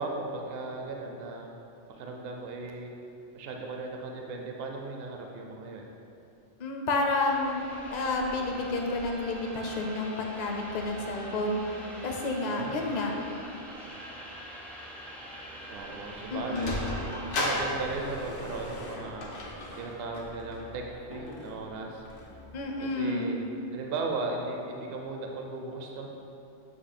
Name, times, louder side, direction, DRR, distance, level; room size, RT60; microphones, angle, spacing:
voice 1, 0.0-1.5 2.0-2.9 3.3-5.9 12.4-12.9 15.7-16.8 17.2-19.3 19.8-22.0 22.8-23.4 23.7-26.1, right 3 dB, 65° right, 1 dB, 0.7 m, -37 dB
voice 2, 6.6-7.7 7.9-11.6 12.0-13.1 16.3-16.7 22.5-23.3, left 2 dB, 45° left, 2 dB, 0.6 m, -30 dB
sound 1, 7.2-17.5, right 1 dB, ahead, 0.4 m, -44 dB
Sliding door, 16.1-22.6, left 1 dB, 85° left, 1.2 m, -36 dB
7.9 x 3.0 x 4.2 m, 2.8 s
omnidirectional pair, 1.2 m